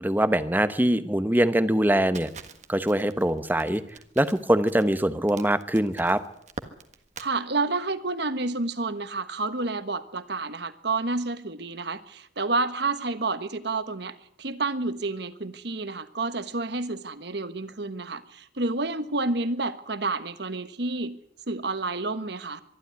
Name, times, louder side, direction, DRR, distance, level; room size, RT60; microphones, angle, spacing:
voice 1, 0.0-2.3 2.7-3.8 4.2-6.2, right 1 dB, 10° right, 12 dB, 1.0 m, -23 dB
Crackle, 2.1-7.3, right 4 dB, 40° right, 1.5 m, -44 dB
voice 2, 7.2-21.2 21.5-22.6, right 3 dB, 60° right, 13 dB, 1.3 m, -29 dB
23.5 x 12.5 x 9.6 m, 0.72 s
head